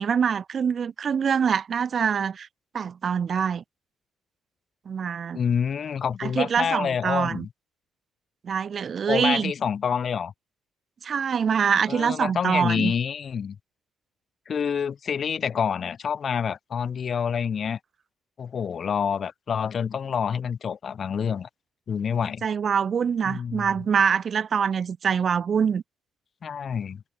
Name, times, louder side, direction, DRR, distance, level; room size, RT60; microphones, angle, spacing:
voice 1, 0.0-2.5 2.7-3.6 4.9-5.4 6.2-7.5 8.4-9.5 11.0-12.9 22.4-25.8, right 7 dB, 50° right, 1.0 m, -24 dB
voice 2, 5.3-7.5 9.1-10.3 11.9-13.6 14.5-17.8 18.4-21.5 21.9-22.4 23.3-23.7 26.4-27.0, left 7 dB, 50° left, 1.6 m, -27 dB
cardioid pair, 90°, 0 cm